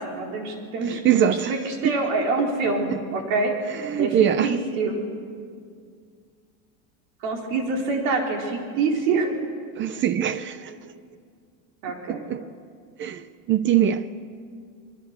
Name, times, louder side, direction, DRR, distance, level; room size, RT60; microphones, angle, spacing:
voice 1, 0.0-4.2 4.4-5.0 7.2-9.3 11.8-12.2, right 3 dB, 70° right, 4.4 m, -26 dB
voice 2, 0.8-1.5 1.8-2.0 2.9-3.0 3.7-4.5 9.8-10.8 12.1-12.4 13.0-14.1, right 10 dB, 30° right, 0.6 m, -23 dB
30.0 x 23.0 x 6.7 m
cardioid pair, 150°, 42 cm